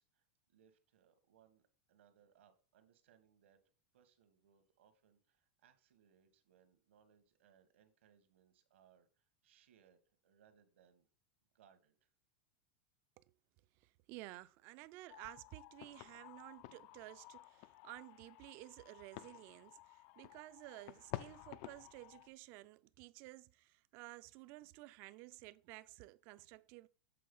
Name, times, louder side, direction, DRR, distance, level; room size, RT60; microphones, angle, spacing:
voice 1, 0.0-3.6 3.9-11.1 11.5-12.1, right 8 dB, 85° right, 1.5 m, -70 dB
voice 2, 14.1-26.9, right 19 dB, 35° right, 0.3 m, -54 dB
sound 1, 15.1-22.3, left 16 dB, 40° left, 0.3 m, -52 dB
7.7 x 3.9 x 5.3 m
supercardioid pair, 170°, 6 cm